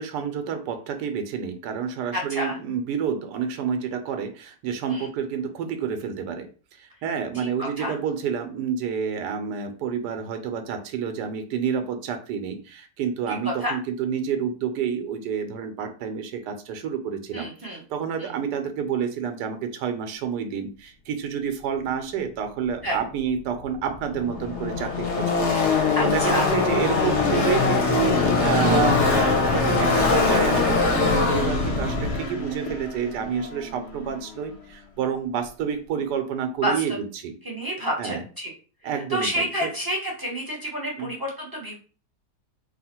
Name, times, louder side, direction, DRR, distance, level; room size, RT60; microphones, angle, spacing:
voice 1, 0.0-17.5 17.9-37.3 38.0-38.2 38.8-39.7 41.0-41.1, right 7 dB, 90° right, 8 dB, 1.2 m, -29 dB
voice 2, 2.1-2.6 4.9-5.1 7.3-7.9 13.4-13.7 17.3-17.8 18.2-18.3 22.8-23.0 26.0-26.5 31.3-31.6 36.6-36.8 37.4-38.5 39.1-41.8, equal, 15° right, -3 dB, 0.8 m, -29 dB
Car passing by / Race car auto racing, 23.4-23.5 23.6-34.2, left 4 dB, 55° left, 0.9 m, -22 dB
3.3 x 2.3 x 4.3 m, 0.37 s
omnidirectional pair, 1.7 m